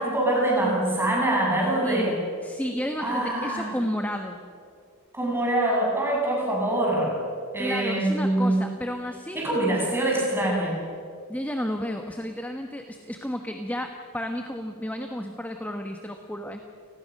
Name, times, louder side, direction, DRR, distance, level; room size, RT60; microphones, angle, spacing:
voice 1, 0.0-2.2 3.0-3.7 5.1-7.1 7.5-8.6 9.3-10.8, right 1 dB, 10° right, -3 dB, 7.9 m, -24 dB
voice 2, 2.4-4.4 7.6-9.5 11.3-16.6, equal, 5° left, 4 dB, 1.2 m, -32 dB
30.0 x 20.0 x 6.6 m, 2.4 s
head